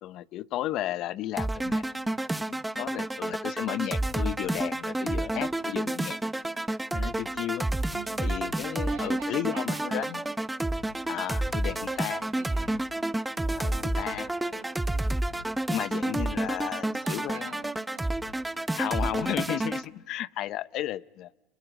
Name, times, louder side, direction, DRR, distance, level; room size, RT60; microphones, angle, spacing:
voice 1, 0.0-1.8 2.1-6.2 6.9-7.7 8.2-10.2 11.1-12.2 13.6-14.3 14.9-17.6 18.7-21.3, left 14 dB, 55° left, 16 dB, 0.8 m, -34 dB
sound 1, 1.4-19.9, right 1 dB, 10° right, 0.9 m, -30 dB
voice 2, 7.9-8.2 8.9-10.2 11.6-12.7 13.4-14.7 16.9-18.2, right 11 dB, 80° right, 4 dB, 5.9 m, -46 dB
29.5 x 26.5 x 5.2 m, 1.0 s
supercardioid pair, 100°, 0 cm